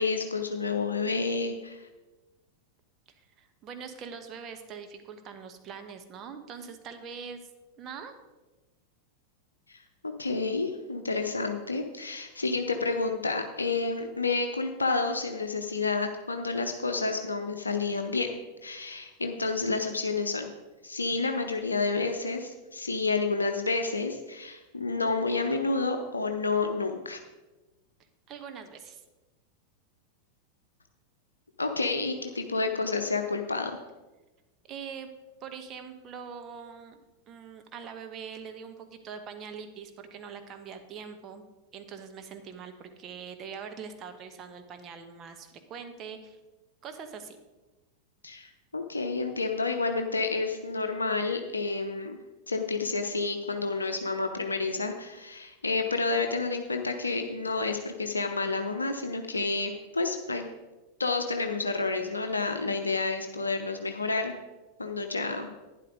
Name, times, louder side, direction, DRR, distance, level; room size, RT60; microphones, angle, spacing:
voice 1, 0.0-1.9 9.7-9.8 10.0-20.5 20.8-27.2 31.6-33.7 48.2-52.2 52.5-60.5 61.0-64.3 64.8-65.5, left 3 dB, 80° left, 5 dB, 0.7 m, -30 dB
voice 2, 3.4-7.4 7.8-8.1 28.3-29.0 34.7-35.1 35.4-37.0 37.3-41.4 41.7-46.4 46.8-47.4, right 6 dB, 30° right, 6 dB, 1.2 m, -43 dB
11.5 x 10.0 x 3.9 m, 1.1 s
figure-of-eight pair, 90°, 0 cm